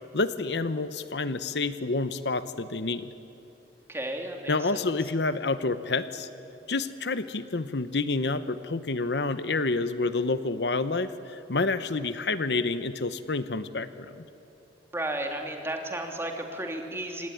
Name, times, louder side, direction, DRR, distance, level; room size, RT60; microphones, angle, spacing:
voice 1, 0.1-3.1 4.5-6.3 6.7-14.2, left 3 dB, 70° left, 12 dB, 0.9 m, -28 dB
voice 2, 3.9-4.8 14.9-17.3, right 1 dB, 15° right, 2 dB, 2.9 m, -33 dB
26.0 x 18.5 x 10.0 m, 2.9 s
head